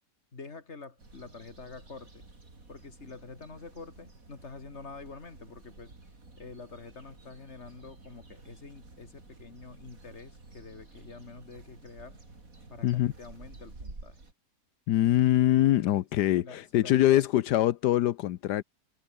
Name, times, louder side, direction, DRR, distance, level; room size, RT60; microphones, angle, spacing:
voice 1, 0.3-2.3 2.7-5.9 6.4-12.2 12.7-14.2 15.8-16.0 16.3-17.3, left 4 dB, 40° left, 2.8 m, -47 dB
sound 1, 1.0-14.3, right 3 dB, 55° right, 4.7 m, -51 dB
voice 2, 14.9-18.6, left 13 dB, 80° left, 1.3 m, -24 dB
omnidirectional pair, 1.7 m